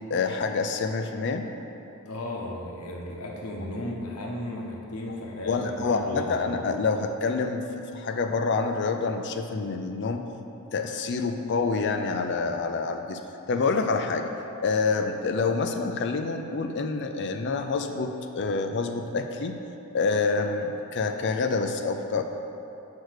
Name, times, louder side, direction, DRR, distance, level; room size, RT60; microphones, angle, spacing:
voice 1, 0.1-1.5 5.5-7.7 7.9-10.3 10.7-13.2 13.5-14.3 14.6-19.6 19.9-22.2, left 4 dB, 55° left, 6 dB, 0.4 m, -27 dB
voice 2, 2.0-6.5, left 1 dB, 85° left, -1 dB, 1.0 m, -35 dB
6.4 x 4.7 x 6.5 m, 2.8 s
head